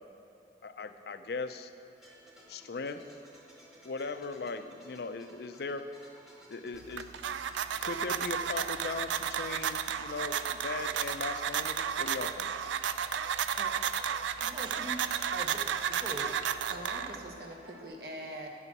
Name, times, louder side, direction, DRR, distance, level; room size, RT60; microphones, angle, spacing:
voice 1, 0.6-1.7 2.5-3.0 3.8-5.9 6.5-7.1 7.8-12.5, left 4 dB, 60° left, 9 dB, 0.5 m, -38 dB
sound 1, 1.9-17.9, equal, ahead, 1.3 m, -56 dB
sound 2, 6.7-17.4, right 8 dB, 85° right, 0.4 m, -33 dB
voice 2, 14.4-15.0 15.3-16.9, right 1 dB, 25° right, 3 dB, 0.7 m, -43 dB
voice 3, 16.7-18.5, right 1 dB, 60° right, 1 dB, 1.2 m, -43 dB
9.9 x 6.8 x 6.0 m, 2.7 s
head